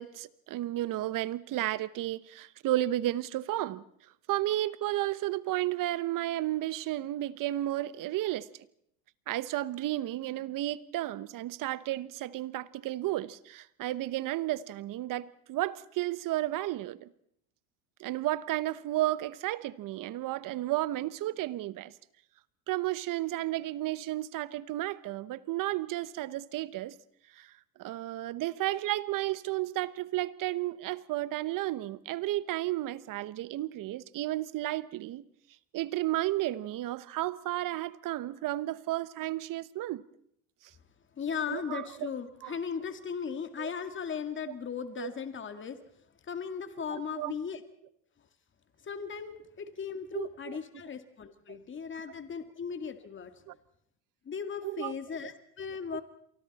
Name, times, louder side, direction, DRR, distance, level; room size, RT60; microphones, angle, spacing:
voice 1, 0.0-3.8 4.3-8.5 9.3-17.1 18.0-21.9 22.7-27.0 27.4-27.5 27.8-35.2 35.7-40.0 41.5-41.8 42.4-42.5 43.6-43.7 45.0-45.1 46.9-47.4 50.1-50.3 51.5-51.6 53.5-53.6 54.6-54.9, right 15 dB, 50° right, 1.1 m, -33 dB
voice 2, 41.2-45.8 46.3-47.6 48.8-53.4 54.3-56.0, left 6 dB, 30° left, 2.1 m, -37 dB
29.0 x 24.0 x 4.2 m
supercardioid pair, 100°, 41 cm